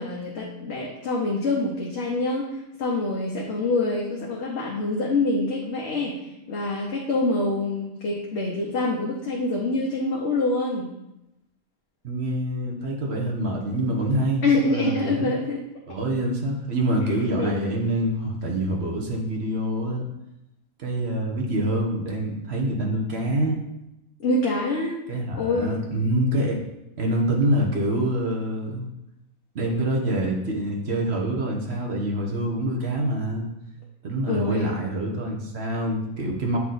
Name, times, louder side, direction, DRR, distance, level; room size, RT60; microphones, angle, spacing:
voice 1, 0.0-6.2 6.5-10.9 14.4-15.6 17.4-17.5 24.2-25.0 25.3-25.8 34.3-34.8, left 2 dB, 55° left, -3 dB, 1.0 m, -25 dB
voice 2, 12.0-14.4 14.7-15.3 15.9-20.1 20.8-23.6 25.1-26.6 27.0-28.9 29.5-33.5 34.0-36.6, right 1 dB, 50° right, 1 dB, 1.1 m, -26 dB
8.4 x 3.0 x 3.9 m, 0.90 s
omnidirectional pair, 1.5 m